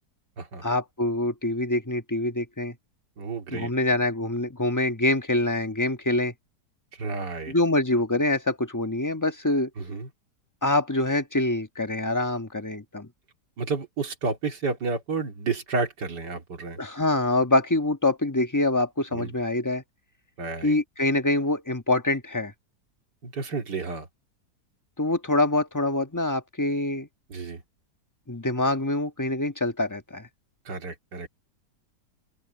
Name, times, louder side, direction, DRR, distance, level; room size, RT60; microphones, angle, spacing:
voice 1, 0.6-2.7 3.5-6.3 7.5-9.7 10.6-13.1 16.8-19.8 20.6-22.5 25.0-27.1 28.3-30.3, left 2 dB, 10° left, 1.2 m, -25 dB
voice 2, 3.2-3.7 7.0-7.5 9.8-10.1 13.6-16.8 19.1-19.3 20.4-20.7 23.2-24.1 27.3-27.6 30.7-31.3, right 4 dB, 90° right, 3.0 m, -31 dB
open air
omnidirectional pair, 1.8 m